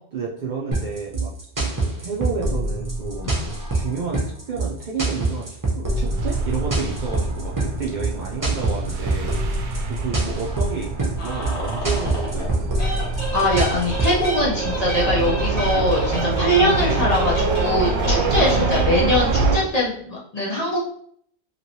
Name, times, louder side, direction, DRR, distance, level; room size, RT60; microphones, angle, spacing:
voice 1, 0.1-1.3 1.8-5.5 5.8-9.3 9.9-12.9, right 5 dB, 55° right, -3 dB, 0.6 m, -31 dB
sound 1, 0.7-14.3, right 2 dB, 20° right, 0.7 m, -25 dB
sound 2, 5.9-19.6, right 3 dB, 90° right, 0.9 m, -25 dB
sound 3, 11.2-12.5 12.8-19.2, right 1 dB, 85° left, 1.4 m, -30 dB
voice 2, 13.3-20.8, left 1 dB, 45° left, -4 dB, 0.7 m, -22 dB
3.0 x 2.9 x 2.7 m, 0.64 s
omnidirectional pair, 1.1 m